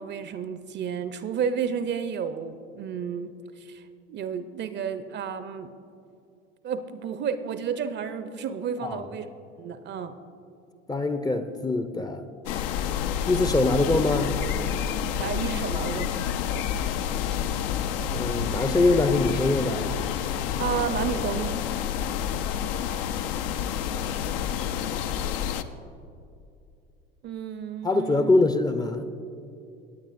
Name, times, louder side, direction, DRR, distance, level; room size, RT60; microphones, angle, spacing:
voice 1, 0.0-3.3 3.7-3.8 4.1-5.7 6.6-9.3 9.6-10.1 15.2-16.1 20.6-21.6 27.2-28.3, right 7 dB, 35° right, 0.6 m, -31 dB
voice 2, 10.9-12.2 13.3-14.4 18.0-19.9 24.4-24.7 27.8-29.0, left 2 dB, 15° left, 0.5 m, -24 dB
sound 1, 12.5-25.6, left 8 dB, 65° left, 0.6 m, -29 dB
18.0 x 8.9 x 2.5 m
figure-of-eight pair, 65°, 30 cm